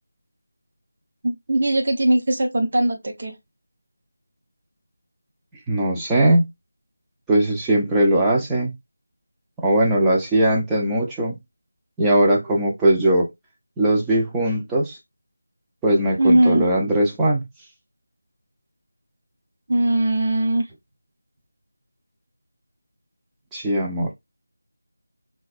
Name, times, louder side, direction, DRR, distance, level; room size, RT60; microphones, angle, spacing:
voice 1, 1.2-3.3 16.2-16.7 19.7-20.7, right 1 dB, 45° right, 0.7 m, -19 dB
voice 2, 5.7-6.5 7.3-8.7 9.6-11.4 12.0-13.3 13.8-15.0 15.8-17.4 23.5-24.1, right 1 dB, 5° right, 0.5 m, -19 dB
4.0 x 2.2 x 2.3 m
figure-of-eight pair, 165°, 0 cm